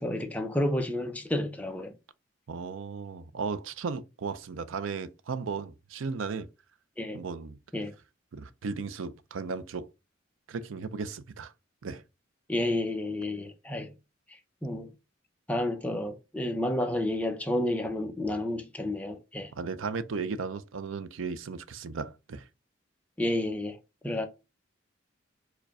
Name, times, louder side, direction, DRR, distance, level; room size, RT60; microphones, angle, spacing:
voice 1, 0.0-1.9 7.0-7.2 7.7-7.9 12.5-13.9 14.6-14.9 15.5-19.5 23.2-23.8 24.0-24.3, left 1 dB, 5° left, 0.5 m, -30 dB
voice 2, 2.5-6.5 7.1-7.6 8.3-9.9 10.5-11.5 11.8-12.0 19.5-22.4, right 5 dB, 90° right, 0.5 m, -35 dB
4.8 x 2.2 x 4.7 m
head